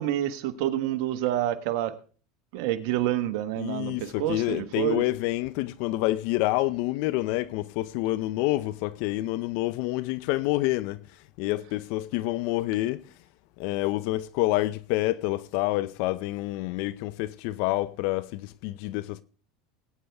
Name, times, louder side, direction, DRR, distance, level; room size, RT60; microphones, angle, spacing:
voice 1, 0.0-1.9 2.5-5.0, right 12 dB, 70° right, 1.2 m, -28 dB
voice 2, 3.6-13.1 13.6-19.2, left 17 dB, 65° left, 0.6 m, -28 dB
20.0 x 9.4 x 3.5 m
supercardioid pair, 105°, 3 cm